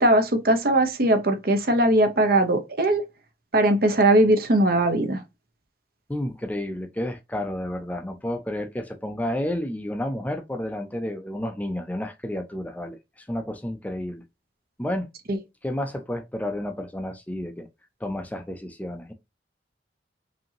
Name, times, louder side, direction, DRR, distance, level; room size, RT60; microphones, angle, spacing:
voice 1, 0.0-3.0 3.5-5.2, right 1 dB, 55° right, 0.8 m, -20 dB
voice 2, 6.1-14.2 14.8-15.1 15.6-17.7 18.0-19.1, left 1 dB, 10° left, 0.5 m, -31 dB
5.2 x 2.8 x 2.8 m
head